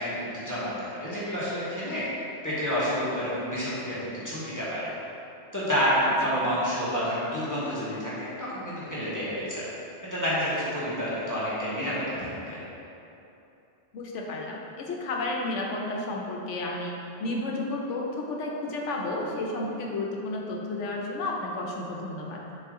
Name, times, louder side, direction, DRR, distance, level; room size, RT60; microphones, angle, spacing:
voice 1, 0.0-2.1 2.4-4.9 5.5-9.6 10.0-12.6, equal, 15° left, -10 dB, 1.3 m, -29 dB
voice 2, 13.9-16.9 17.2-22.4, left 2 dB, 80° left, -1 dB, 1.1 m, -32 dB
6.7 x 3.9 x 3.7 m, 2.9 s
omnidirectional pair, 1.2 m